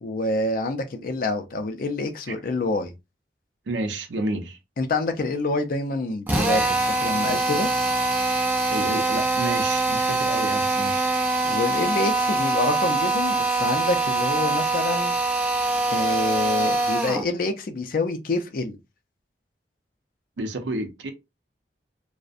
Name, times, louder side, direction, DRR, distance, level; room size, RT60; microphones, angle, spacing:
voice 1, 0.0-2.9 4.8-7.7 11.4-15.1 15.9-18.8, left 2 dB, 55° left, 0.4 m, -27 dB
voice 2, 3.7-4.6 8.7-11.1 20.4-21.1, right 2 dB, 90° right, 0.5 m, -30 dB
Drill, 6.3-17.3, right 2 dB, 10° right, 0.4 m, -23 dB
2.5 x 2.0 x 2.4 m
head